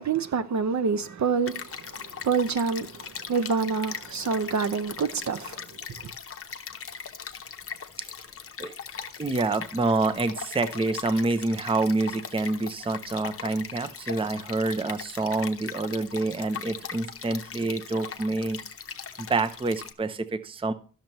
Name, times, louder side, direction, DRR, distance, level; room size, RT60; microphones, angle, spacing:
voice 1, 0.0-5.6 6.0-6.1, right 5 dB, 60° right, 0.6 m, -27 dB
Stream, 1.5-19.9, left 6 dB, 45° left, 0.7 m, -40 dB
voice 2, 9.2-18.6 19.2-20.7, right 3 dB, 15° right, 0.5 m, -27 dB
12.0 x 6.6 x 3.0 m
wide cardioid pair, 150°, 32 cm